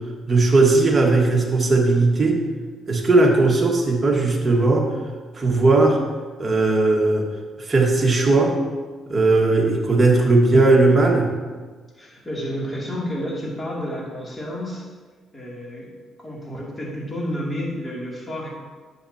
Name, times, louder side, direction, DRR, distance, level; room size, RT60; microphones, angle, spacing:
voice 1, 0.3-2.4 2.9-4.9 5.3-6.0 6.4-7.3 7.7-8.5 9.1-11.3, right 3 dB, 25° right, -1 dB, 1.7 m, -17 dB
voice 2, 12.0-14.9 15.3-15.9 16.2-18.5, equal, 20° left, -5 dB, 2.7 m, -30 dB
10.5 x 7.4 x 2.8 m, 1.4 s
cardioid pair, 90°, 0 cm